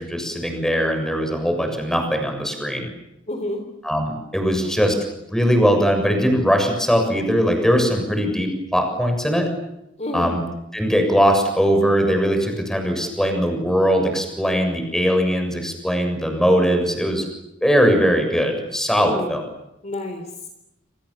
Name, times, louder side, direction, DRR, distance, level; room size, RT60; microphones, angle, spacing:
voice 1, 0.0-2.9 3.8-4.9 5.3-9.5 10.1-10.4 10.7-17.2 17.6-19.4, equal, 5° left, 4 dB, 7.1 m, -20 dB
voice 2, 3.3-3.6 4.4-4.7 10.0-10.3 19.0-19.3 19.8-20.5, left 1 dB, 35° left, 5 dB, 3.9 m, -29 dB
28.0 x 27.0 x 7.3 m, 0.87 s
head